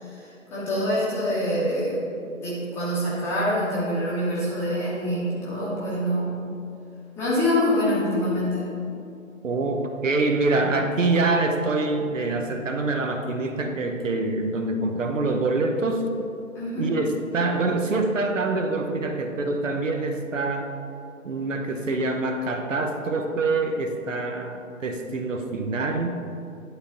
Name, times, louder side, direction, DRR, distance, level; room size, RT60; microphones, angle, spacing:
voice 1, 0.0-2.0 2.4-6.3 7.2-8.7 16.5-16.9 21.7-21.8, left 1 dB, 5° left, -9 dB, 0.9 m, -25 dB
voice 2, 9.4-16.0 16.8-20.7 21.2-26.2, right 3 dB, 65° right, 5 dB, 0.9 m, -25 dB
11.0 x 3.9 x 3.9 m, 2.6 s
figure-of-eight pair, 145°, 41 cm